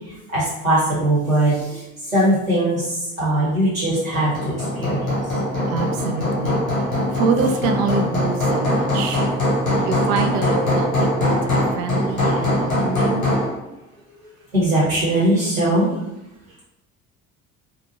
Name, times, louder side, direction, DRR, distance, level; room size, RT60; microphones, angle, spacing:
voice 1, 0.1-5.5 6.9-7.2 12.8-13.3 14.5-15.9, right 1 dB, 90° right, -9 dB, 1.2 m, -21 dB
Hammer, 3.9-13.6, left 1 dB, 90° left, 1.0 m, -22 dB
voice 2, 5.7-9.3 9.8-13.3, right 4 dB, 55° right, 5 dB, 0.5 m, -26 dB
2.7 x 2.4 x 2.8 m, 0.88 s
figure-of-eight pair, 50°, 40 cm